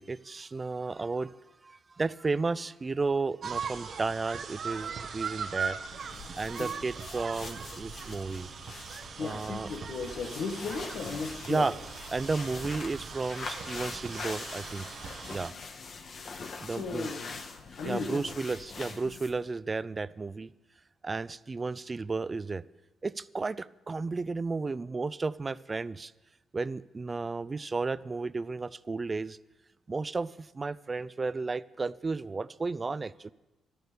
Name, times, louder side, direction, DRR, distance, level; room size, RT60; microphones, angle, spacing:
voice 1, 0.0-1.3 1.6-5.8 6.3-8.5 9.2-9.7 11.5-11.7 12.1-14.9 15.3-15.5 16.6-17.1 17.8-20.5 21.0-22.6 23.0-26.1 26.5-29.4 29.9-33.3, right 3 dB, 30° right, 19 dB, 0.4 m, -33 dB
sound 1, 3.4-15.5, right 6 dB, 50° right, 1.0 m, -40 dB
sound 2, 5.9-19.5, left 4 dB, 50° left, 1.6 m, -44 dB
voice 2, 9.2-11.7 16.6-17.4 17.8-18.3, left 4 dB, 70° left, 5 dB, 1.6 m, -36 dB
12.5 x 12.0 x 6.9 m, 1.0 s
cardioid pair, 90°, 0 cm